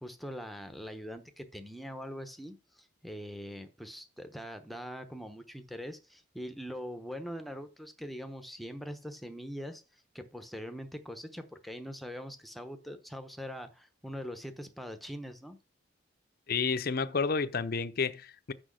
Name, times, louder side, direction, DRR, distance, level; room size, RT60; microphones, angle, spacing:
voice 1, 0.0-15.6, equal, ahead, 0.8 m, -42 dB
voice 2, 16.5-18.5, left 5 dB, 50° left, 0.6 m, -30 dB
6.2 x 6.0 x 6.3 m
head